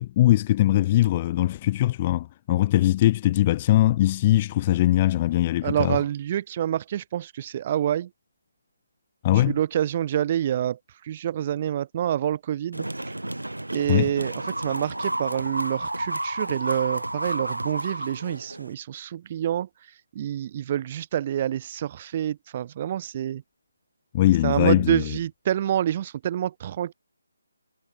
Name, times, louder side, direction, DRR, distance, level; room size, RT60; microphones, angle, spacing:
voice 1, 0.0-6.0 9.2-9.5 13.9-14.1 24.1-25.1, left 14 dB, 25° left, 1.0 m, -21 dB
voice 2, 5.6-8.1 9.3-10.8 11.0-12.9 13.7-19.7 20.1-23.4 24.4-26.9, right 10 dB, 30° right, 1.3 m, -27 dB
sound 1, 12.7-18.7, right 1 dB, 85° right, 1.2 m, -31 dB
figure-of-eight pair, 150°, 0 cm